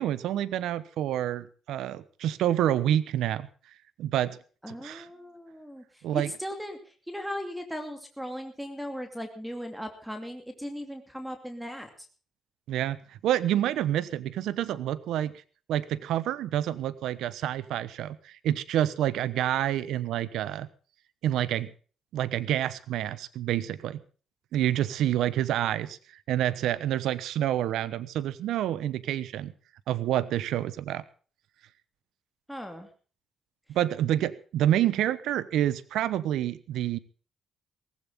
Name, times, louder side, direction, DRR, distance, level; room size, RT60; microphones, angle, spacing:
voice 1, 0.0-3.5 4.0-4.4 4.7-5.1 6.0-6.3 12.7-13.0 13.2-15.3 15.7-20.7 21.2-21.7 22.1-24.0 24.5-26.0 26.3-29.5 29.9-31.0 33.7-37.0, right 12 dB, 85° right, 17 dB, 1.0 m, -28 dB
voice 2, 4.6-12.1 32.5-32.9, equal, 5° right, 6 dB, 2.6 m, -38 dB
17.5 x 16.0 x 3.7 m, 0.39 s
cardioid pair, 90°, 0 cm